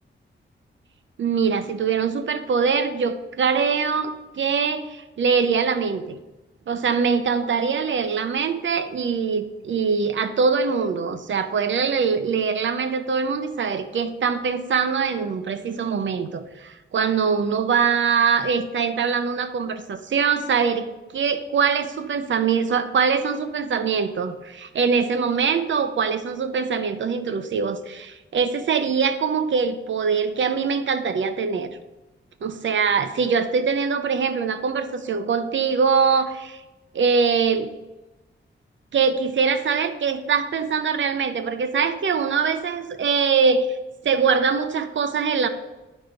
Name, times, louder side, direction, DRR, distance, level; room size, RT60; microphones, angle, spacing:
voice 1, 1.2-6.2 6.7-20.9 21.1-31.7 32.4-36.6 36.9-37.7 38.9-43.8 44.0-45.5, right 5 dB, 70° right, 9 dB, 0.7 m, -23 dB
10.5 x 4.2 x 5.1 m, 1.0 s
wide cardioid pair, 155°, 20 cm